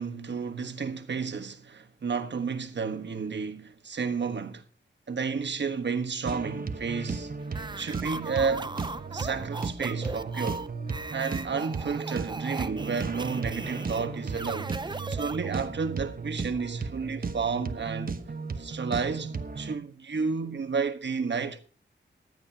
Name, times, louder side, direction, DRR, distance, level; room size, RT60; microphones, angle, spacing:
voice 1, 0.0-4.6 5.1-7.3 7.8-8.7 9.1-10.7 11.1-18.2 18.6-21.6, right 5 dB, 65° right, 1.3 m, -31 dB
sound 1, 6.3-19.7, right 4 dB, 50° right, 1.1 m, -35 dB
sound 2, 7.5-15.8, right 3 dB, 25° right, 0.6 m, -38 dB
19.0 x 12.5 x 2.9 m
wide cardioid pair, 115°, 20 cm